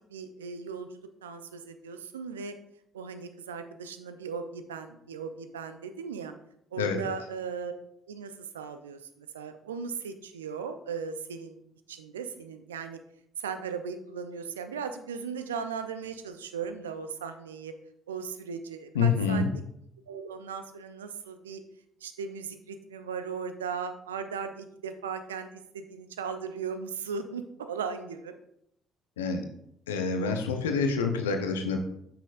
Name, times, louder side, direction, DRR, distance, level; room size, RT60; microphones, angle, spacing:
voice 1, 0.1-0.9 1.2-2.6 2.9-6.3 6.7-7.7 8.1-11.6 11.9-13.0 13.4-17.7 18.1-19.4 20.1-21.6 22.0-28.3, right 6 dB, 80° right, 9 dB, 0.4 m, -37 dB
voice 2, 18.9-19.5 29.2-29.4 29.9-31.8, left 5 dB, 80° left, 5 dB, 0.6 m, -27 dB
8.5 x 6.0 x 2.5 m, 0.74 s
figure-of-eight pair, 50°, 0 cm